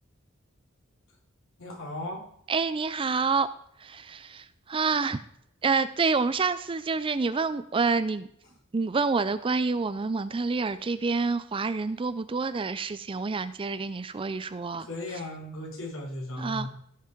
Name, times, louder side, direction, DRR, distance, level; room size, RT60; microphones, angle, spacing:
voice 1, 1.6-2.2 14.8-16.7, left 1 dB, 65° left, -2 dB, 3.5 m, -36 dB
voice 2, 2.5-3.5 3.8-5.2 5.6-8.3 8.7-15.2 16.4-16.7, right 4 dB, 25° right, 13 dB, 0.4 m, -28 dB
16.5 x 5.9 x 4.5 m, 0.69 s
head